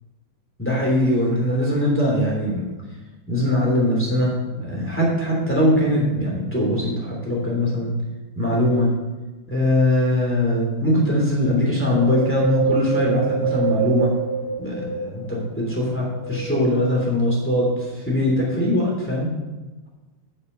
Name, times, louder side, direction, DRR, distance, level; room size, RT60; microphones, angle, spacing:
voice 1, 0.6-2.6 3.3-4.3 4.6-7.9 8.3-8.9 9.5-14.1 14.6-19.3, left 1 dB, 5° left, -4 dB, 1.8 m, -21 dB
Wind, 11.9-15.4 16.0-17.2 17.8-17.9, right 7 dB, 70° left, 1.7 m, -26 dB
8.9 x 7.3 x 5.4 m, 1.2 s
omnidirectional pair, 4.9 m